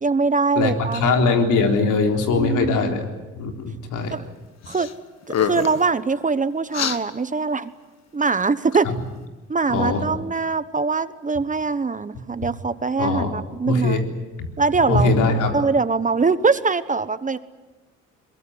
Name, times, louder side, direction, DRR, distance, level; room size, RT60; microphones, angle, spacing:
voice 1, 0.0-1.2 2.3-3.0 4.1-4.2 4.7-4.9 5.3-7.7 8.1-8.9 9.5-14.0 14.6-15.1 15.5-17.4, right 4 dB, 25° right, 13 dB, 1.2 m, -22 dB
voice 2, 0.6-3.0 3.4-4.1 8.8-8.9 9.7-10.0 13.0-13.3 13.7-14.0 14.9-15.6, left 3 dB, 85° left, 3 dB, 3.9 m, -21 dB
sound 1, 4.7-4.9 5.2-5.9 6.7-7.0, left 8 dB, 60° left, 1.6 m, -25 dB
22.5 x 22.0 x 9.7 m, 1.1 s
cardioid pair, 90°, 30 cm